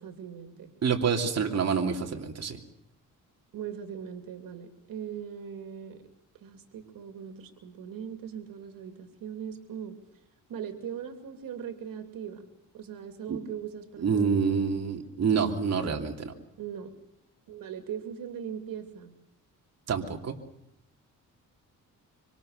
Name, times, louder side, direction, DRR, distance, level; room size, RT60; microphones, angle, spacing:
voice 1, 0.0-0.7 3.5-6.0 6.4-10.0 10.5-12.5 12.7-14.8 16.6-16.9 17.5-19.1, right 8 dB, 85° right, 6 dB, 2.8 m, -40 dB
voice 2, 0.8-2.6 13.3-13.4 14.0-16.3 19.9-20.3, right 6 dB, 50° right, 2 dB, 2.9 m, -27 dB
25.5 x 25.5 x 6.6 m, 0.82 s
cardioid pair, 125°, 33 cm